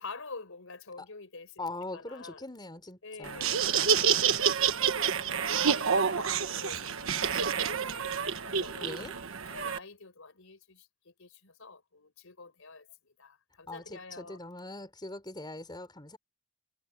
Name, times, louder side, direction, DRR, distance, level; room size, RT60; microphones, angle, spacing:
voice 1, 0.0-1.7 1.9-2.4 3.0-4.7 5.3-9.1 9.5-14.5, left 4 dB, 65° left, 5.5 m, -48 dB
voice 2, 1.6-3.6 8.8-9.1 13.7-16.2, left 2 dB, 20° left, 5.0 m, -42 dB
Laughter, 3.2-9.8, right 7 dB, 65° right, 1.4 m, -28 dB
head